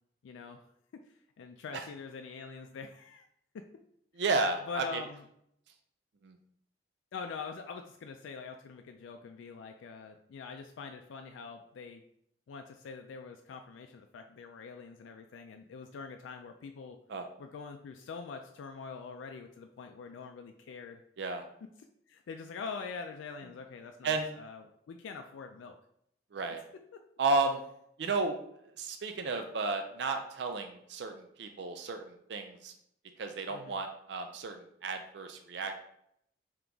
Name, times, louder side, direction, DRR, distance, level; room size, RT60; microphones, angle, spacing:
voice 1, 0.2-0.6 0.9-1.0 1.4-3.3 3.5-3.7 4.7-5.2 7.1-12.0 12.5-17.0 17.4-21.0 22.1-25.7 33.5-33.8, left 5 dB, 90° left, 5 dB, 0.3 m, -44 dB
voice 2, 4.2-5.0 6.2-6.4 17.1-17.3 21.2-21.4 24.0-24.3 26.3-26.6 27.2-27.6 28.0-28.4 28.8-32.7 33.2-35.7, right 3 dB, 65° right, 6 dB, 0.4 m, -33 dB
3.8 x 2.9 x 3.4 m, 0.73 s
head